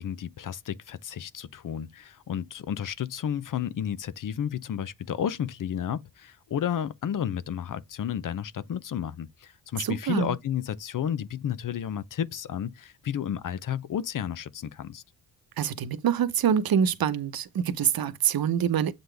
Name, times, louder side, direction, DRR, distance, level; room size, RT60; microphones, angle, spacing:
voice 1, 0.0-15.0, left 9 dB, 50° left, 0.7 m, -32 dB
voice 2, 9.8-10.3 15.6-18.9, right 8 dB, 60° right, 1.0 m, -25 dB
7.9 x 3.9 x 3.4 m
cardioid pair, 100°, 40 cm